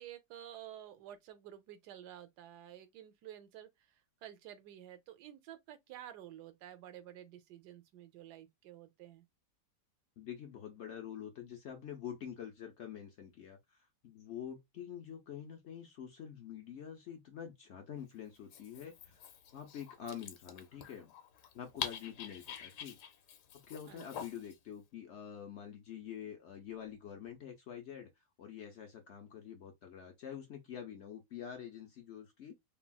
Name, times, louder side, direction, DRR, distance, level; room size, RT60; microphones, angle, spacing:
voice 1, 0.0-9.2 23.8-24.1, right 11 dB, 80° right, 1.2 m, -51 dB
voice 2, 10.2-19.2 19.5-21.1 21.5-23.0 23.7-28.1 28.4-32.5, left 9 dB, 65° left, 0.7 m, -46 dB
Dog, 18.3-24.6, left 8 dB, 90° left, 1.3 m, -47 dB
3.4 x 2.3 x 2.2 m
omnidirectional pair, 1.8 m